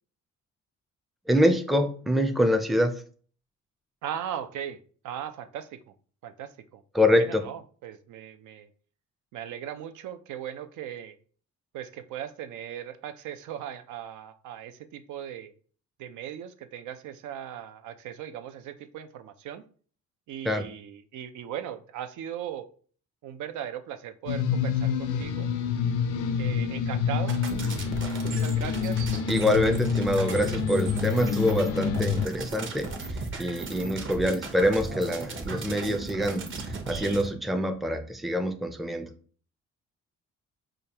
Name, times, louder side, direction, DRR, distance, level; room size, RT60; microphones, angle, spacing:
voice 1, 1.3-3.0 6.9-7.4 20.4-20.6 29.3-32.9 33.4-39.1, equal, ahead, 6 dB, 0.4 m, -25 dB
voice 2, 4.0-5.8 6.2-6.8 7.1-8.7 9.3-11.2 11.7-15.5 16.0-19.6 20.3-22.7 23.2-25.5 26.4-27.3 28.2-29.1, right 10 dB, 75° right, 10 dB, 0.5 m, -38 dB
sound 1, 24.3-32.3, left 7 dB, 80° left, 0.5 m, -27 dB
sound 2, 27.3-37.3, right 3 dB, 40° right, 0.9 m, -36 dB
5.0 x 2.3 x 2.9 m, 0.43 s
cardioid pair, 90°, 30 cm